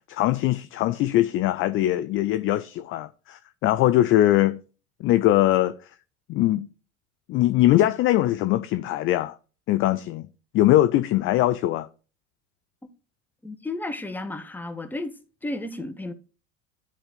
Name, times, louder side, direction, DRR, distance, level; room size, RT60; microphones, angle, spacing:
voice 1, 0.1-4.6 5.0-5.7 6.3-6.7 7.3-9.3 9.7-10.3 10.5-11.9, left 14 dB, 30° left, 0.4 m, -21 dB
voice 2, 13.4-15.2 15.4-16.1, left 2 dB, 5° left, 0.9 m, -33 dB
10.0 x 4.2 x 3.4 m
figure-of-eight pair, 70°, 41 cm